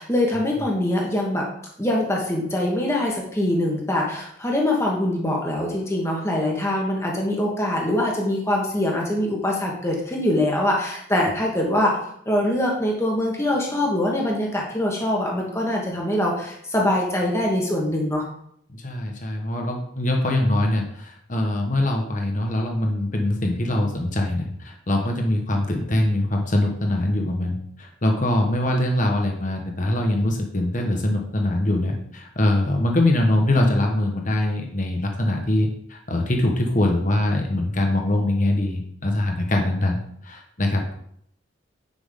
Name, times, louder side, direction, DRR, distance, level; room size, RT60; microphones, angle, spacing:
voice 1, 0.0-1.5 1.8-12.0 12.2-18.2, left 1 dB, 15° left, -2 dB, 1.5 m, -23 dB
voice 2, 18.7-40.9, left 1 dB, 40° left, 2 dB, 1.2 m, -23 dB
10.0 x 6.0 x 3.7 m, 0.69 s
head